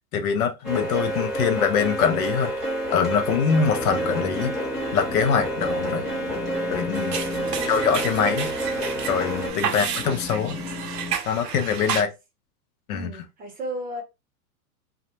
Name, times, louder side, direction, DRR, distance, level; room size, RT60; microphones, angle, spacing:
voice 1, 0.1-2.5 2.9-4.5 4.9-6.1 6.7-7.2 7.6-8.5 9.1-10.6 11.3-12.1 12.9-13.1, left 7 dB, 65° left, 0.7 m, -23 dB
sound 1, 0.6-9.5, right 1 dB, ahead, 1.0 m, -29 dB
sound 2, 3.7-11.1, left 2 dB, 20° left, 0.7 m, -36 dB
sound 3, 6.9-12.0, right 8 dB, 85° right, 0.7 m, -31 dB
voice 2, 7.3-7.9 9.7-9.9 11.9-12.1 12.9-14.0, right 1 dB, 20° right, 0.7 m, -36 dB
2.4 x 2.1 x 2.9 m
hypercardioid pair, 120°, 47 cm